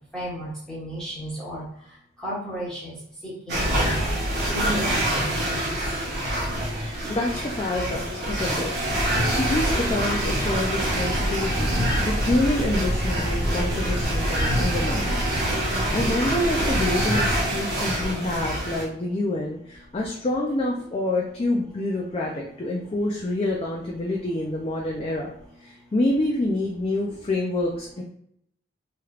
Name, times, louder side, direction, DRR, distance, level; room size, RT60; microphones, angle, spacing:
voice 1, 0.1-1.6 2.2-2.9 3.2-4.0 4.5-5.7, equal, 5° left, -8 dB, 1.2 m, -33 dB
sound 1, 3.5-18.8, equal, 50° right, 0.9 m, -25 dB
voice 2, 6.7-9.1 9.4-15.2 15.6-25.3 25.6-28.0, left 1 dB, 30° left, -1 dB, 0.4 m, -27 dB
3.1 x 3.0 x 2.4 m, 0.72 s
head